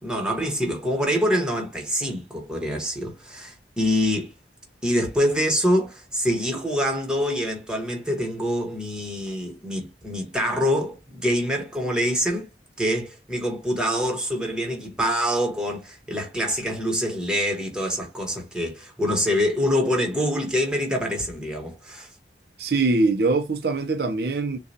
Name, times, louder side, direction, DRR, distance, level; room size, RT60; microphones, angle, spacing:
voice 1, 0.0-4.3 4.8-12.5 12.8-22.1, equal, 5° right, 1.2 m, -25 dB
voice 2, 22.6-24.6, right 3 dB, 60° right, 0.5 m, -22 dB
6.5 x 2.3 x 2.7 m
head